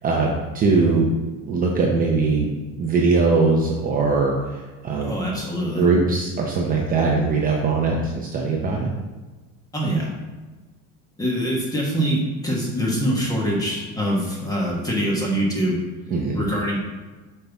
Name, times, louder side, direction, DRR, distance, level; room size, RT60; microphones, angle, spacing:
voice 1, 0.0-1.1 1.4-2.5 2.8-5.1 5.8-8.9 16.1-16.4, right 3 dB, 25° right, -2 dB, 0.7 m, -21 dB
voice 2, 5.0-5.9 9.7-10.1 11.2-15.8 16.3-16.8, equal, 10° left, -3 dB, 1.4 m, -24 dB
7.8 x 5.6 x 3.5 m, 1.2 s
cardioid pair, 170°, 35 cm